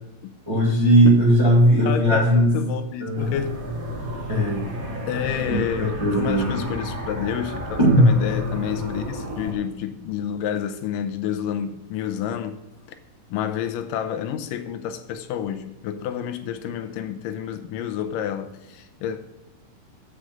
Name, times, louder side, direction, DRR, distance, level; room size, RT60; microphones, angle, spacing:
voice 1, 0.5-2.5 3.0-3.3 4.3-4.7 5.5-6.6 7.8-8.1, right 1 dB, 15° right, -4 dB, 1.1 m, -18 dB
voice 2, 1.9-3.8 5.1-12.6 13.3-19.2, left 9 dB, 90° left, 8 dB, 2.4 m, -29 dB
sound 1, 3.2-9.5, equal, 35° right, 1.4 m, -32 dB
8.1 x 5.0 x 7.5 m, 1.0 s
omnidirectional pair, 3.8 m